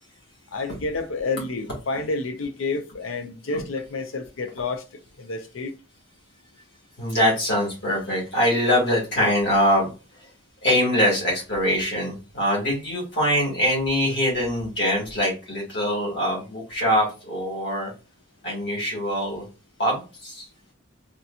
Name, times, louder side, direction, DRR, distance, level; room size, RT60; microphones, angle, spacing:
voice 1, 0.5-4.8 5.2-5.7, left 3 dB, 80° left, 0.6 m, -29 dB
voice 2, 7.0-9.9 10.6-17.9 18.4-19.4 19.8-20.5, equal, 55° left, 1.6 m, -23 dB
3.7 x 2.8 x 2.4 m
head